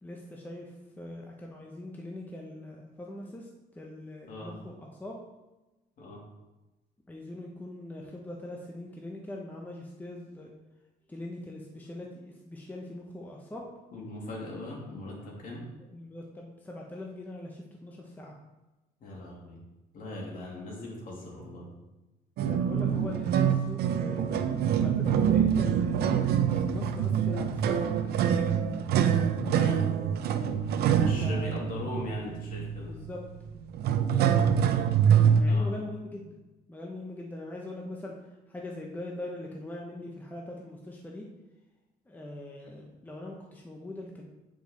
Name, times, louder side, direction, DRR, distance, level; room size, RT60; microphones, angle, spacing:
voice 1, 0.0-3.5 3.7-5.2 7.1-10.5 11.1-13.6 15.8-18.3 22.4-26.0 26.4-28.2 31.2-31.7 32.8-33.2 33.8-34.3 35.4-36.3 36.7-38.2 38.5-41.3 42.1-44.2, left 1 dB, 10° left, -1 dB, 0.9 m, -42 dB
voice 2, 13.9-15.6 19.0-19.6 19.9-21.7 29.5-29.8 31.0-32.9 35.5-35.7, left 2 dB, 55° left, -3 dB, 2.9 m, -39 dB
sound 1, 22.4-35.4, right 8 dB, 70° right, 0.6 m, -25 dB
8.7 x 5.2 x 4.0 m, 1.1 s
cardioid pair, 110°, 17 cm